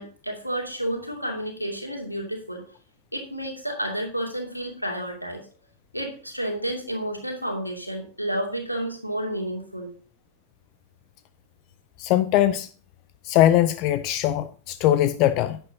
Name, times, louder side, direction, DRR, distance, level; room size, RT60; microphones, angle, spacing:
voice 1, 0.0-2.6 3.1-5.5 5.9-9.9, right 1 dB, 90° left, 2.6 m, -31 dB
voice 2, 12.0-12.7 13.2-15.6, left 13 dB, 40° left, 0.5 m, -21 dB
11.0 x 9.3 x 2.8 m
figure-of-eight pair, 90°, 0 cm